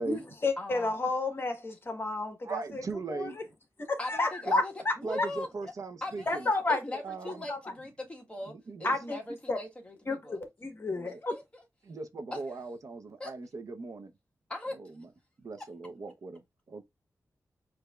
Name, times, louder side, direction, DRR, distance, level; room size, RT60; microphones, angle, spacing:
voice 1, 0.0-2.8 3.1-3.3 3.8-4.9 6.3-6.8 7.5-7.6 8.8-9.2 9.5-9.6 10.1-11.4, left 3 dB, 40° left, 1.1 m, -31 dB
voice 2, 0.6-1.1 4.0-5.7 6.0-8.5 8.8-10.4 11.3-11.6 12.3-12.4 13.2-13.3 14.5-14.8, left 1 dB, 20° left, 1.4 m, -40 dB
voice 3, 2.4-3.4 4.4-4.6 5.0-6.5 7.0-7.5 8.5-9.0 10.9-11.2 11.8-14.1 14.7-15.1 15.4-16.4 16.7-16.8, right 3 dB, 65° right, 0.7 m, -39 dB
7.9 x 2.7 x 2.3 m
wide cardioid pair, 85°, 6 cm